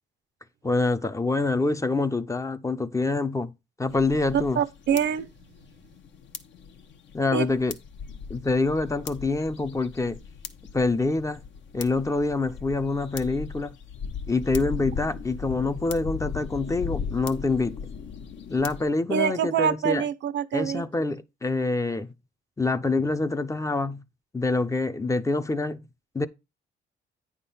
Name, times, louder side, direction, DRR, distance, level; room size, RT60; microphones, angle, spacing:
voice 1, 0.6-3.5 3.8-4.6 7.1-7.7 8.3-10.2 10.7-11.4 11.7-13.7 14.3-17.8 18.5-20.0 20.5-22.1 22.6-24.0 24.3-25.8 26.1-26.3, left 3 dB, 15° left, 0.6 m, -26 dB
sound 1, 3.9-18.8, left 6 dB, 65° left, 1.0 m, -38 dB
voice 2, 4.3-5.3 7.3-7.5 19.1-20.8, right 8 dB, 65° right, 0.7 m, -25 dB
9.1 x 3.6 x 5.6 m
cardioid pair, 90°, 20 cm